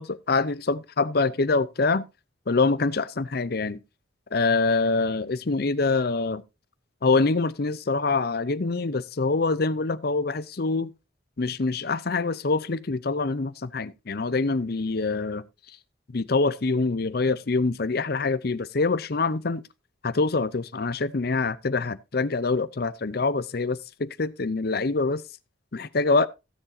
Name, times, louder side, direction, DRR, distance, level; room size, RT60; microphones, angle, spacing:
voice 1, 0.0-2.0 2.5-3.8 4.3-6.4 7.0-10.9 11.4-15.4 16.1-19.6 20.0-25.2 25.7-26.3, left 3 dB, 50° left, 0.6 m, -25 dB
16.0 x 7.3 x 2.7 m
head